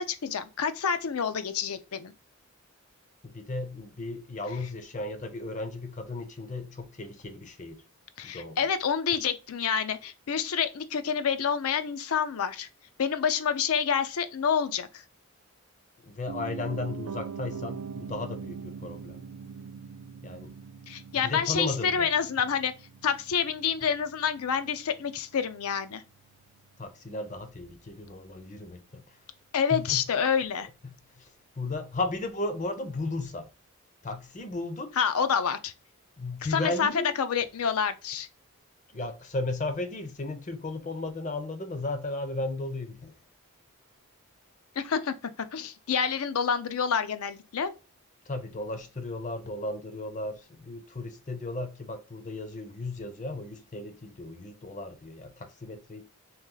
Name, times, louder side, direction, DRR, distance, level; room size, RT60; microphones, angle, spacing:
voice 1, 0.0-2.1 8.2-12.7 13.0-14.9 20.9-22.7 23.0-26.0 29.5-30.7 35.0-35.7 36.5-36.9 37.2-38.3 44.8-45.1 45.5-47.7, left 7 dB, 80° left, 0.5 m, -28 dB
voice 2, 3.2-7.8 8.2-8.7 16.0-19.2 20.2-20.5 21.1-22.1 23.8-23.9 26.8-29.0 29.7-30.1 30.8-33.5 34.0-34.9 36.2-37.1 38.9-43.1 48.3-56.0, left 2 dB, 35° left, 0.6 m, -35 dB
Piano, 16.3-26.3 26.6-26.7, right 6 dB, 85° right, 0.4 m, -43 dB
3.0 x 3.0 x 3.7 m
head